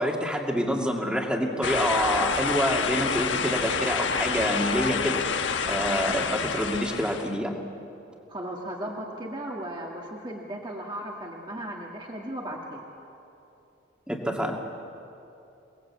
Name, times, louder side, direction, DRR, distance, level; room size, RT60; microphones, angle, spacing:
voice 1, 0.0-5.2 5.7-7.5 14.1-14.5, equal, 5° right, 1 dB, 2.3 m, -27 dB
sound 1, 1.6-7.3, left 5 dB, 75° left, 1.3 m, -28 dB
voice 2, 8.3-12.9, right 1 dB, 25° right, -1 dB, 1.9 m, -36 dB
28.5 x 19.5 x 8.4 m, 2.8 s
head